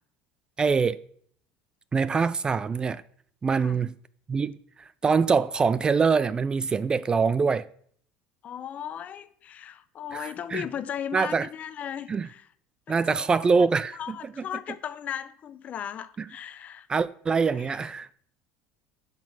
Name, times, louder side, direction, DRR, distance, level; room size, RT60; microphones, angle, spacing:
voice 1, 0.6-1.0 1.9-3.0 3.4-3.9 4.3-4.5 5.0-7.7 10.1-10.6 11.1-11.5 12.1-12.3 12.9-14.0 16.9-18.1, right 5 dB, 20° right, 0.3 m, -24 dB
voice 2, 8.4-12.5 12.9-13.5 13.9-16.9 17.5-17.8, left 9 dB, 40° left, 0.8 m, -37 dB
10.5 x 6.0 x 6.1 m
supercardioid pair, 110°, 4 cm